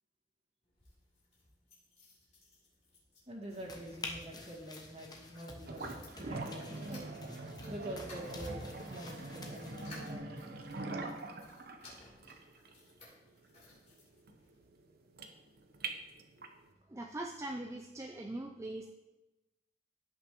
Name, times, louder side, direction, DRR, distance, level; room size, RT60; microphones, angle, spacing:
sound 1, 0.6-14.6 15.2-16.1 16.4-16.5 16.7-16.8, left 1 dB, 40° left, 3.6 m, -59 dB
voice 1, 3.3-7.0 7.7-10.5, right 1 dB, 35° right, -2 dB, 2.0 m, -46 dB
sound 2, 3.5-10.2, left 2 dB, 25° left, 1.1 m, -49 dB
sound 3, 5.7-16.6, right 3 dB, 60° right, 0.9 m, -44 dB
voice 2, 16.9-18.9, right 1 dB, 15° right, 2 dB, 0.5 m, -41 dB
16.0 x 6.0 x 3.1 m, 1.0 s
head